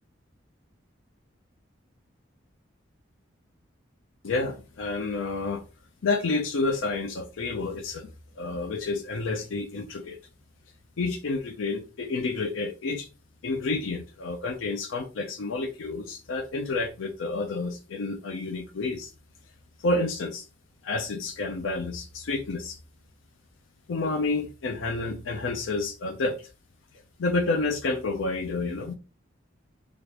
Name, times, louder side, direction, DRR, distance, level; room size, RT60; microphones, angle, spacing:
voice 1, 4.2-5.6 6.0-8.1 8.4-10.2 11.0-13.1 13.4-19.1 19.8-20.5 20.8-22.8 23.9-26.4 27.2-28.9, left 3 dB, 90° left, 0.5 m, -29 dB
3.4 x 2.5 x 2.9 m
head